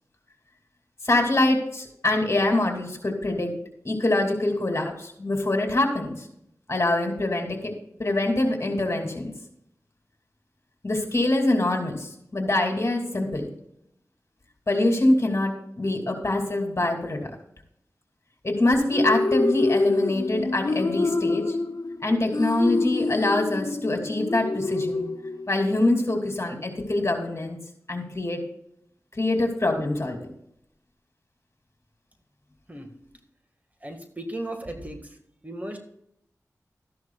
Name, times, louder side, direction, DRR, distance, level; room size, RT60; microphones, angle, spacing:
voice 1, 1.0-3.5 3.8-6.1 6.7-7.7 8.0-9.3 10.8-13.5 14.7-17.2 18.4-21.6 22.0-25.1 25.5-27.6 27.9-28.4 29.2-30.2, left 2 dB, 45° left, 3 dB, 2.7 m, -24 dB
sound 1, 18.7-25.8, left 3 dB, 70° left, 1.1 m, -27 dB
voice 2, 33.8-35.2 35.4-35.8, right 1 dB, 25° right, 4 dB, 1.8 m, -35 dB
13.5 x 10.5 x 2.4 m, 0.74 s
cardioid pair, 45°, 6 cm